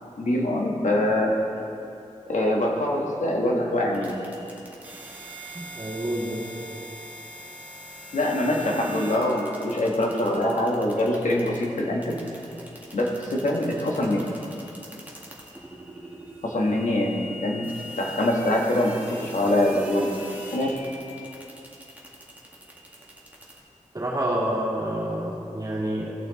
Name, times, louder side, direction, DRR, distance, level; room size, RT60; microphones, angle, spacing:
voice 1, 0.2-1.3 2.3-4.1 8.1-12.2 12.9-14.2 16.4-20.1 20.5-20.7, left 1 dB, 75° left, -1 dB, 1.4 m, -24 dB
sound 1, 3.9-23.6, equal, 15° right, 1.7 m, -43 dB
voice 2, 5.5-6.5 23.9-26.3, right 1 dB, 30° right, -7 dB, 2.6 m, -28 dB
16.5 x 5.9 x 4.0 m, 2.6 s
wide cardioid pair, 105°, 13 cm